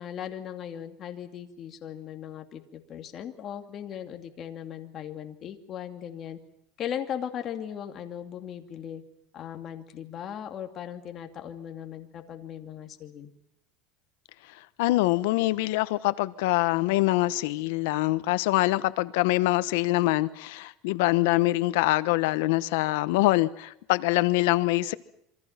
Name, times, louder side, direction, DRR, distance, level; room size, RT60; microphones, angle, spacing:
voice 1, 0.0-6.4 6.8-9.0 9.3-13.3, left 9 dB, 35° left, 2.5 m, -38 dB
voice 2, 14.8-24.9, left 18 dB, 80° left, 1.1 m, -24 dB
27.5 x 24.5 x 5.9 m
cardioid pair, 150°, 0 cm